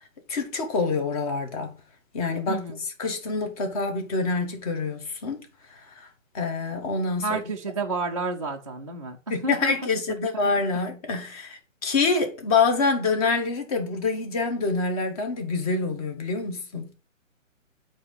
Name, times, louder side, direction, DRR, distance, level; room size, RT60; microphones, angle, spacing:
voice 1, 0.3-1.7 2.1-2.6 3.0-5.4 5.7-6.1 6.3-7.4 9.3-16.9, left 4 dB, 25° left, 1.2 m, -26 dB
voice 2, 2.5-2.8 7.2-9.8, right 3 dB, 25° right, 0.4 m, -30 dB
8.5 x 2.8 x 5.1 m
hypercardioid pair, 150°, 40 cm